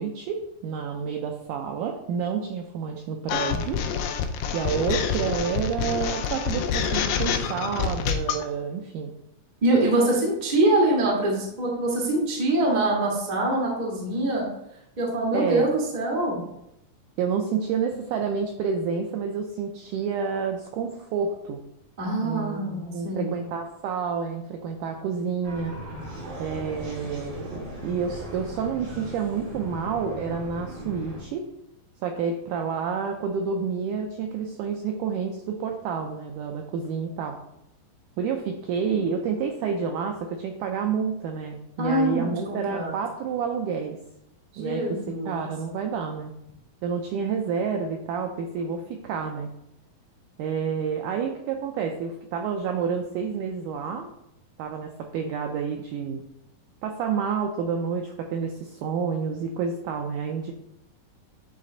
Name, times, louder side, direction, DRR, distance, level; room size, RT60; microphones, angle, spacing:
voice 1, 0.0-3.8 4.5-9.1 15.3-15.7 17.2-21.6 22.2-25.7 26.4-31.4 32.0-37.4 38.2-44.0 44.6-45.0 45.3-46.3 46.8-49.5 50.4-54.1 54.6-56.2 56.8-60.5, right 6 dB, 85° right, 3 dB, 1.8 m, -29 dB
sound 1, 3.3-8.4, left 7 dB, 80° left, 2.2 m, -27 dB
voice 2, 9.6-14.4 15.0-16.4 22.0-23.4 41.8-42.9 44.5-45.4, right 1 dB, 40° right, -3 dB, 0.6 m, -24 dB
sound 2, 25.4-31.2, right 1 dB, 70° right, 3.6 m, -38 dB
9.4 x 3.2 x 3.9 m, 0.81 s
omnidirectional pair, 4.2 m